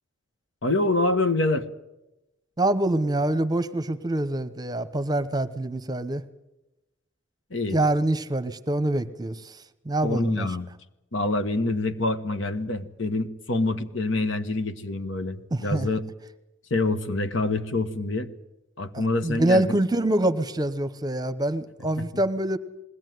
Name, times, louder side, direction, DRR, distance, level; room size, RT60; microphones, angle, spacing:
voice 1, 0.6-1.7 7.5-7.8 10.0-10.7 11.1-16.0 16.7-18.3 18.8-19.7 22.0-22.1, left 2 dB, 65° left, 11 dB, 1.2 m, -26 dB
voice 2, 2.6-6.2 7.7-10.5 15.5-15.9 18.9-22.6, right 1 dB, 20° right, 11 dB, 0.9 m, -25 dB
21.0 x 17.5 x 9.4 m, 0.96 s
head